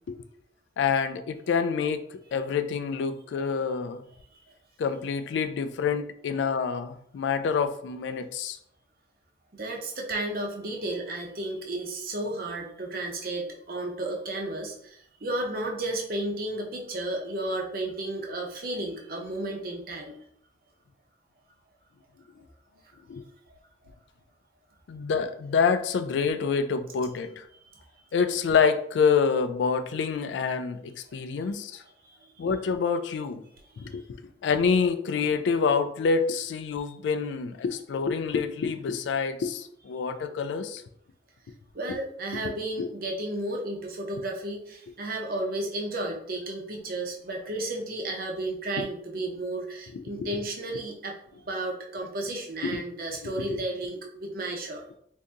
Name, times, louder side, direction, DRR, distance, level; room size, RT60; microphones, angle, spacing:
voice 1, 0.8-2.0 2.3-4.0 4.8-8.6 23.1-23.2 24.9-27.4 28.1-31.8 32.4-33.4 33.8-34.1 34.4-40.8 41.9-42.0 42.8-42.9 50.2-50.4 52.6-52.8, left 5 dB, 85° left, 10 dB, 0.3 m, -27 dB
voice 2, 9.5-20.2 22.9-23.0 27.7-27.8 31.4-31.5 32.2-32.3 33.7-33.9 41.7-51.1 51.4-54.8, right 1 dB, 50° right, 0 dB, 0.7 m, -33 dB
2.7 x 2.6 x 3.5 m, 0.68 s
head